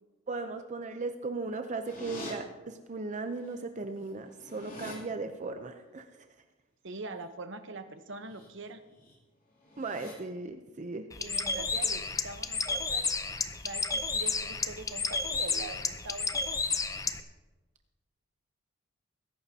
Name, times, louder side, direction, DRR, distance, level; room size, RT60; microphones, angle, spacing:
voice 1, 0.3-6.3 9.8-11.1, right 3 dB, 35° right, 7 dB, 0.6 m, -37 dB
sound 1, 1.8-2.3 3.5-3.6 3.9-5.0 8.1-8.5 8.8-9.1 9.6-10.1, left 1 dB, 45° left, 2.9 m, -44 dB
voice 2, 6.8-8.8 11.2-13.0 13.6-16.6, right 3 dB, 65° right, 8 dB, 1.0 m, -43 dB
Bird, 11.1-17.2, left 4 dB, 15° left, 0.6 m, -32 dB
21.5 x 11.5 x 2.8 m, 1.2 s
head